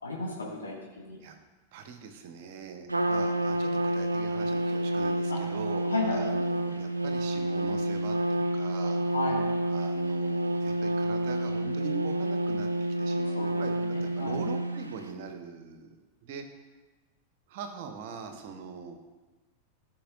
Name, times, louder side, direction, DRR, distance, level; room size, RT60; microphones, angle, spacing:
voice 1, 0.0-1.2 5.3-5.4 5.8-6.2 9.1-9.4 13.3-14.4, left 2 dB, 75° left, -3 dB, 2.1 m, -34 dB
voice 2, 1.7-9.0 9.7-12.7 13.0-16.5 17.5-19.0, right 6 dB, 50° right, 6 dB, 1.0 m, -42 dB
Trumpet, 2.9-15.0, right 1 dB, 80° right, 0.5 m, -29 dB
14.5 x 6.1 x 2.6 m, 1.2 s
figure-of-eight pair, 90°, 0 cm